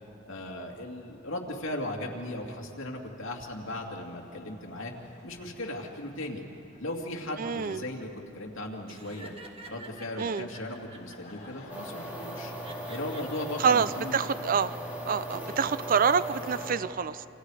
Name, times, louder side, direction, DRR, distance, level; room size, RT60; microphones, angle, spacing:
voice 1, 0.3-4.9 5.2-6.4 6.8-9.3 9.7-12.5 12.9-14.2, left 1 dB, 75° left, 0 dB, 2.5 m, -37 dB
sound 1, 3.3-12.7, left 2 dB, 40° left, 4.6 m, -57 dB
voice 2, 7.4-7.8 10.2-10.5 13.6-14.8 15.1-17.3, right 6 dB, 45° right, 15 dB, 0.5 m, -27 dB
Laughter, 8.9-11.5 12.3-13.5 13.9-14.4, right 2 dB, 30° right, 1.6 m, -49 dB
sound 2, 11.7-16.7, right 1 dB, 10° right, 3.6 m, -38 dB
28.5 x 26.0 x 4.9 m, 2.8 s
head